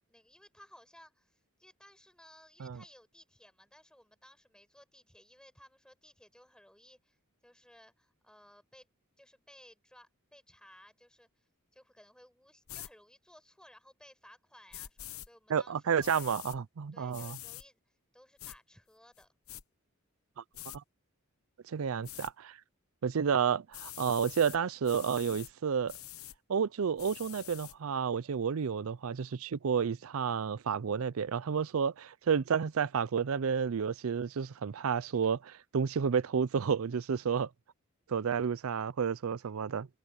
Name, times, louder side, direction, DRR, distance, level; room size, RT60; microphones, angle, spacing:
voice 1, 0.1-7.2 7.4-8.9 9.2-16.4 16.9-19.3 21.9-22.2, left 1 dB, 5° left, 7.2 m, -59 dB
sound 1, 12.7-12.9 14.7-15.3 16.0-16.6 17.1-17.6 18.4-18.6 19.2-19.6 20.5-20.8 22.0-22.3 23.7-24.6 24.8-25.5 25.9-26.4 27.0-27.7, left 13 dB, 85° left, 1.0 m, -46 dB
voice 2, 15.5-17.4 20.7-20.8 21.7-22.6 23.0-25.9 26.5-37.5 38.1-39.9, right 6 dB, 75° right, 0.5 m, -31 dB
head